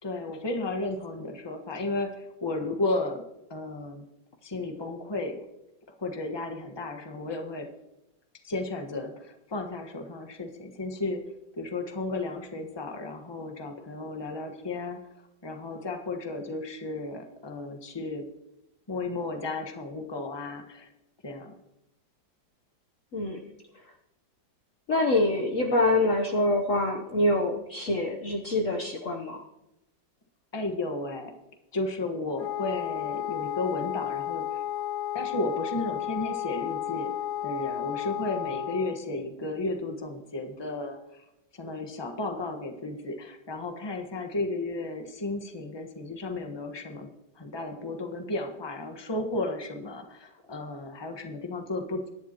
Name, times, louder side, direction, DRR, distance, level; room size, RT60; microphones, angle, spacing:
voice 1, 0.0-3.2 3.5-4.0 4.4-5.4 6.0-7.7 8.4-11.2 11.5-15.0 15.4-18.2 18.9-20.9 21.2-21.5 30.5-31.3 31.7-34.6 35.1-37.1 37.4-41.0 41.5-47.1 47.4-52.1, left 2 dB, 15° left, 4 dB, 1.2 m, -33 dB
voice 2, 24.9-29.4, left 2 dB, 50° left, 2 dB, 1.2 m, -25 dB
Wind instrument woodwind instrument, 32.4-39.0, left 11 dB, 65° left, 1.3 m, -33 dB
22.5 x 10.5 x 3.0 m, 0.90 s
omnidirectional pair, 2.0 m